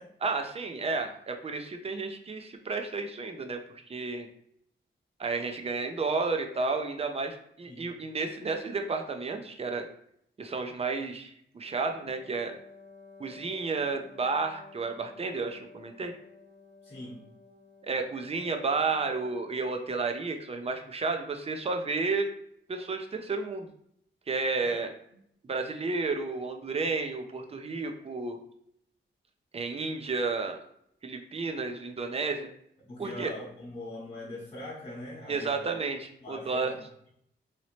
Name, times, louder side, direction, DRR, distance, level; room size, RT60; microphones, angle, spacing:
voice 1, 0.2-3.6 3.9-4.3 5.2-9.9 10.4-12.5 13.2-16.1 17.8-22.3 22.7-23.7 24.3-24.9 25.5-28.4 29.5-30.6 31.0-32.5 33.0-33.3 35.3-36.8, right 4 dB, 30° right, 5 dB, 0.5 m, -32 dB
Wind instrument woodwind instrument, 11.6-19.8, left 4 dB, 85° right, 0.8 m, -53 dB
voice 2, 16.8-17.2 24.6-24.8 32.8-35.8 36.2-36.8, left 1 dB, 30° left, -7 dB, 1.0 m, -42 dB
3.0 x 2.8 x 3.0 m, 0.71 s
cardioid pair, 85°, 20 cm